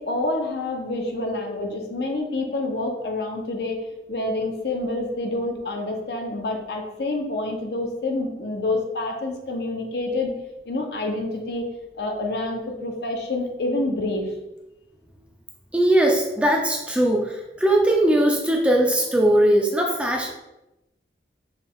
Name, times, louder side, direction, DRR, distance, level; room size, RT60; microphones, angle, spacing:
voice 1, 0.0-3.8 4.1-10.3 10.7-11.7 12.0-14.3, left 2 dB, 65° left, 3 dB, 0.7 m, -27 dB
voice 2, 15.7-20.3, right 1 dB, 5° right, 0 dB, 0.4 m, -20 dB
4.7 x 2.3 x 3.5 m, 0.94 s
head